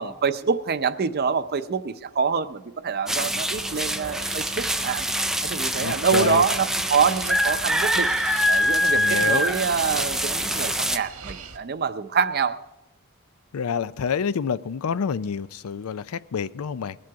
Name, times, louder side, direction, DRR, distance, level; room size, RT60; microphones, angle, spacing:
voice 1, 0.0-5.1 5.4-8.1 8.5-12.6, right 6 dB, 45° right, 0.6 m, -25 dB
sound 1, 3.1-11.0, equal, ahead, 0.3 m, -25 dB
sound 2, 3.5-11.6, right 4 dB, 90° right, 1.4 m, -43 dB
voice 2, 5.8-6.4 8.9-9.5 13.5-17.0, left 6 dB, 85° left, 0.4 m, -28 dB
20.0 x 7.6 x 4.7 m
head